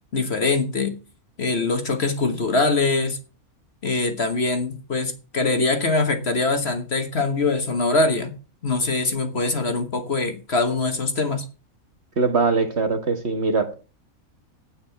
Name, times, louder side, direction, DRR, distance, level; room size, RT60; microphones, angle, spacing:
voice 1, 0.1-1.0 1.4-3.2 3.8-8.3 8.6-11.4, left 3 dB, 45° left, 7 dB, 1.6 m, -23 dB
voice 2, 12.2-13.7, right 4 dB, 45° right, 6 dB, 1.8 m, -22 dB
9.2 x 8.9 x 5.8 m, 0.34 s
omnidirectional pair, 1.6 m